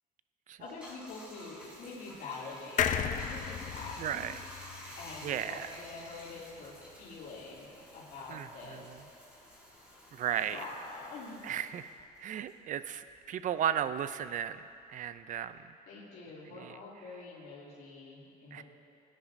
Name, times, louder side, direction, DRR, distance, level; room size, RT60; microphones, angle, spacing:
voice 1, 0.6-4.2 5.0-9.0 10.5-11.4 15.5-18.6, left 3 dB, 70° left, -8 dB, 2.8 m, -46 dB
Bathtub (filling or washing), 0.6-13.4 13.7-15.6, left 1 dB, 5° right, 2.9 m, -52 dB
sound 1, 2.8-6.3 6.6-6.7 6.9-7.0, left 8 dB, 50° left, 0.6 m, -35 dB
voice 2, 4.0-4.4 4.8-5.0 5.2-5.7 8.3-9.0 10.1-10.6 11.4-11.9 12.2-14.6 14.9-15.7 16.5-16.8 18.5-18.6, right 9 dB, 50° right, 13 dB, 0.5 m, -35 dB
18.0 x 10.0 x 2.7 m, 2.5 s
cardioid pair, 110°, 17 cm